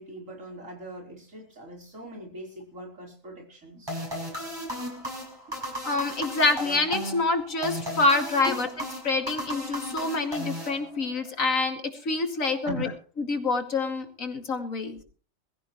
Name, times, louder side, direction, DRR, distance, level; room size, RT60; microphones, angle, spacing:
voice 1, 0.0-3.9 5.5-5.6 8.4-8.7 12.6-13.0, right 1 dB, 75° right, 0 dB, 4.7 m, -40 dB
sound 1, 3.9-11.3, equal, 20° right, 5.9 m, -35 dB
voice 2, 5.8-8.7 9.0-12.9 13.2-15.0, left 3 dB, 90° left, 4 dB, 2.8 m, -26 dB
22.0 x 14.5 x 3.1 m, 0.40 s
omnidirectional pair, 1.4 m